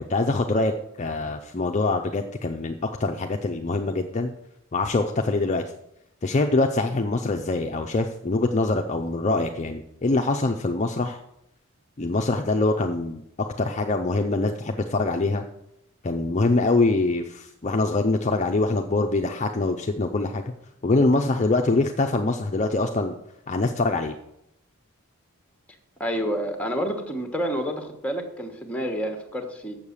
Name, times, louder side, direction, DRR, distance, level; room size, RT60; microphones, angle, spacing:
voice 1, 0.0-4.3 4.7-5.6 6.2-11.2 12.0-15.4 16.0-20.4 20.8-23.1 23.5-24.1, left 2 dB, 30° left, 4 dB, 0.5 m, -24 dB
voice 2, 26.0-29.8, equal, 5° left, 5 dB, 1.2 m, -29 dB
7.4 x 6.5 x 7.1 m, 0.80 s
head